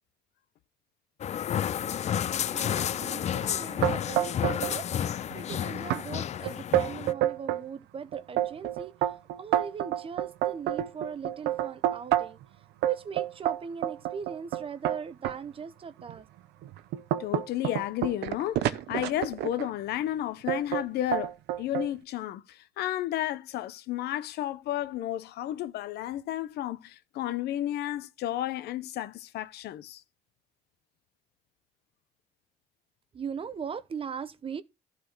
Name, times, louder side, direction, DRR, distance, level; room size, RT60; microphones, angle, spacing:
sound 1, 1.2-7.1, left 10 dB, 40° left, 0.5 m, -31 dB
voice 1, 2.4-9.0 9.4-12.4 12.8-16.3 33.1-34.6, right 6 dB, 35° right, 0.8 m, -39 dB
sound 2, 3.8-4.7 5.0-5.5 5.9-6.0 6.5-7.6 8.1-12.4 12.8-15.4 16.0-16.1 16.6-19.7 20.5-20.8 21.1-21.9, right 13 dB, 80° right, 0.8 m, -28 dB
voice 2, 17.2-21.3 21.6-30.0, left 13 dB, 75° left, 0.8 m, -32 dB
12.0 x 4.2 x 6.0 m
cardioid pair, 110°, 17 cm